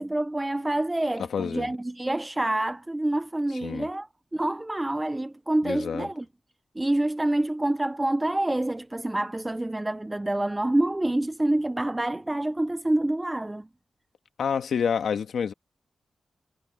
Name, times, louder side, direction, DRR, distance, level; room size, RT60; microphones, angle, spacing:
voice 1, 0.0-6.3 6.8-13.7, right 1 dB, 15° right, 0.4 m, -27 dB
voice 2, 1.2-1.7 3.6-3.9 5.6-6.1 14.4-15.5, left 7 dB, 85° left, 1.5 m, -28 dB
wide cardioid pair, 100°, 0 cm